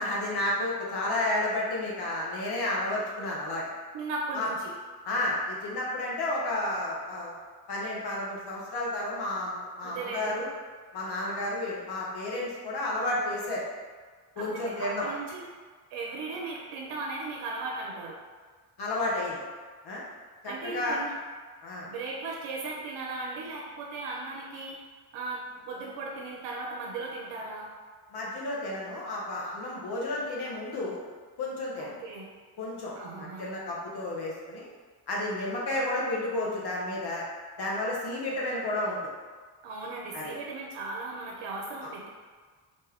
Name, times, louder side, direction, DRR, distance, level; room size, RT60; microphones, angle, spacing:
voice 1, 0.0-3.7 4.3-4.5 5.0-7.3 7.7-10.5 10.9-13.7 14.4-15.1 18.8-19.4 19.8-20.0 20.4-21.0 21.6-21.9 28.1-31.0 31.4-31.9 32.6-34.7 35.1-37.2 37.6-39.1 40.1-40.3 41.8-41.9, left 1 dB, 50° left, -4 dB, 0.9 m, -31 dB
voice 2, 3.9-4.6 9.8-10.3 14.4-15.4 15.9-18.2 20.5-21.1 21.8-24.8 25.1-27.7 31.8-32.3 33.0-33.5 39.6-42.1, right 3 dB, 65° right, -1 dB, 0.6 m, -37 dB
2.6 x 2.2 x 3.4 m, 1.5 s
supercardioid pair, 50°, 49 cm